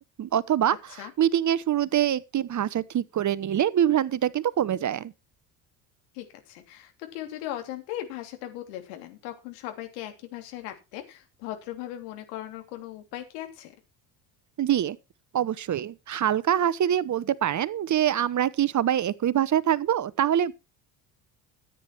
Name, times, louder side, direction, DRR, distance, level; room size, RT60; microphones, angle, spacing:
voice 1, 0.2-0.8 1.2-5.1 14.6-15.0 15.3-20.5, right 10 dB, 35° right, 0.9 m, -24 dB
voice 2, 6.1-13.7, left 13 dB, 75° left, 3.2 m, -38 dB
14.0 x 9.3 x 4.6 m
hypercardioid pair, 60°, 49 cm